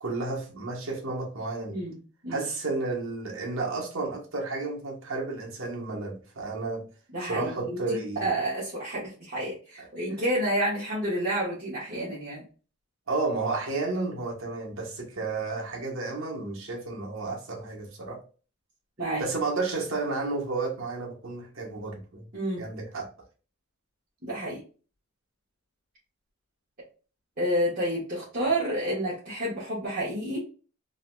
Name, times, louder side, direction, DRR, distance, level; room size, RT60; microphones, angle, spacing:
voice 1, 0.0-1.8 2.3-6.9 7.2-8.3 9.8-9.9 13.1-18.2 19.2-22.3 22.6-23.1, right 3 dB, 70° right, 1.3 m, -32 dB
voice 2, 1.7-2.0 2.2-2.4 7.1-12.4 19.0-19.2 22.3-22.6 24.2-24.6 27.4-30.4, right 1 dB, 40° right, 1.5 m, -29 dB
3.9 x 2.9 x 2.3 m
head